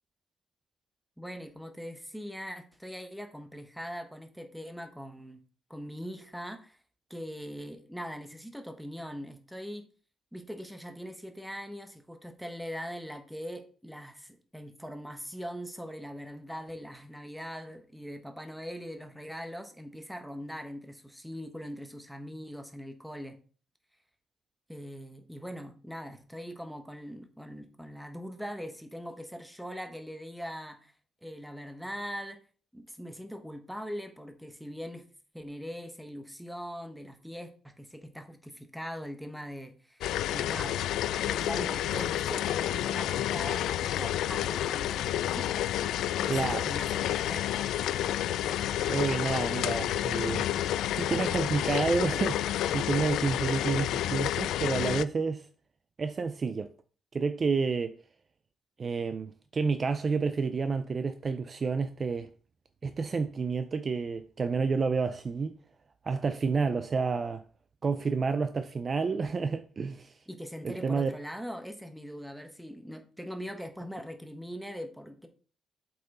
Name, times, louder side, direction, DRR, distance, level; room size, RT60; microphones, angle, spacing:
voice 1, 1.2-5.4 5.7-6.8 7.1-9.9 10.3-23.4 24.7-30.9 31.2-32.4 32.7-35.0 35.3-40.9 41.2-45.5 46.2-47.7 70.3-75.3, equal, ahead, 1.0 m, -41 dB
sound 1, 40.0-55.0, left 12 dB, 85° left, 0.3 m, -30 dB
voice 2, 46.3-46.6 48.9-50.5 50.9-55.5 56.0-56.7 57.1-58.0 58.8-62.3 62.8-65.5 66.0-67.4 67.8-70.1 70.6-71.2, right 4 dB, 30° right, 0.4 m, -30 dB
7.7 x 5.5 x 4.2 m
cardioid pair, 140°, 0 cm